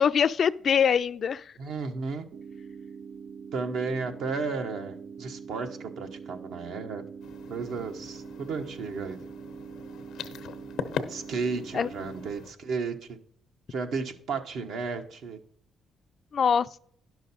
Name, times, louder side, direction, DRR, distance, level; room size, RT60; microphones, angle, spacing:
voice 1, 0.0-1.5 11.7-11.9 16.3-16.8, left 7 dB, 50° left, 0.4 m, -24 dB
voice 2, 1.6-2.2 3.5-7.0 7.5-9.2 11.1-13.0 13.7-15.4, right 4 dB, 80° right, 1.1 m, -33 dB
sound 1, 2.3-12.3, right 6 dB, 60° right, 0.3 m, -43 dB
sound 2, 7.2-12.5, left 7 dB, 85° left, 0.7 m, -40 dB
11.0 x 6.2 x 4.2 m
cardioid pair, 90°, 0 cm